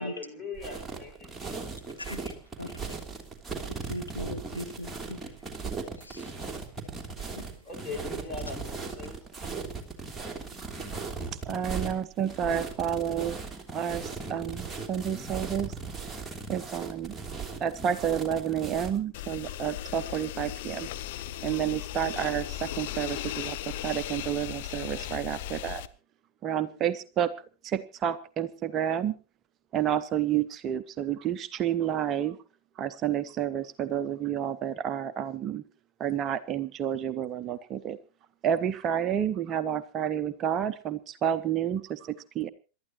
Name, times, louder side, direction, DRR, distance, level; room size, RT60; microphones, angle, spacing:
voice 1, 0.0-1.7 7.6-9.2 26.5-26.8, left 4 dB, 20° left, 6.3 m, -41 dB
sound 1, 0.6-19.0, right 4 dB, 10° right, 3.0 m, -38 dB
voice 2, 2.0-3.0 3.7-5.5 6.0-6.5 7.4-7.5, left 1 dB, 80° left, 1.0 m, -40 dB
voice 3, 11.5-13.4 13.7-15.7 16.5-17.1 17.6-20.9 21.4-25.8 26.4-27.3 27.6-29.1 29.7-32.4 32.8-35.6 36.0-38.0 38.4-42.5, right 9 dB, 30° right, 0.7 m, -30 dB
sound 2, 19.1-25.9, left 13 dB, 50° left, 0.9 m, -37 dB
27.5 x 12.5 x 3.0 m
figure-of-eight pair, 90°, 0 cm